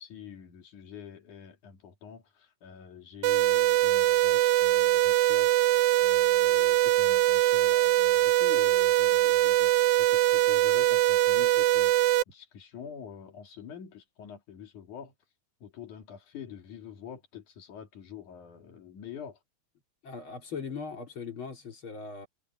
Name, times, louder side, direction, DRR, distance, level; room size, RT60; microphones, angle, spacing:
voice 1, 0.0-5.6 6.0-15.1 15.6-19.4, left 8 dB, 75° left, 4.1 m, -46 dB
sound 1, 3.2-12.2, right 15 dB, 80° right, 2.0 m, -22 dB
voice 2, 20.0-22.3, left 5 dB, 40° left, 3.6 m, -39 dB
omnidirectional pair, 3.5 m